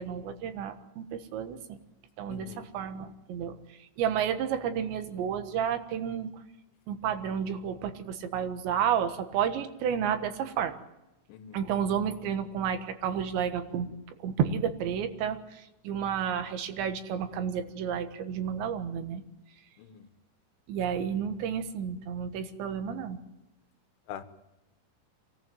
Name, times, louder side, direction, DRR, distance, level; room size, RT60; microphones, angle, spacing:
voice 1, 0.0-1.8 2.2-2.5 2.7-3.6 4.0-6.3 6.9-10.8 11.5-13.9 14.2-19.2 20.7-23.2, right 8 dB, 70° right, 8 dB, 3.5 m, -31 dB
voice 2, 2.3-2.7 11.3-11.6 19.8-20.1 24.1-24.2, left 9 dB, 75° left, 10 dB, 3.5 m, -43 dB
24.5 x 17.5 x 9.2 m, 0.95 s
omnidirectional pair, 5.7 m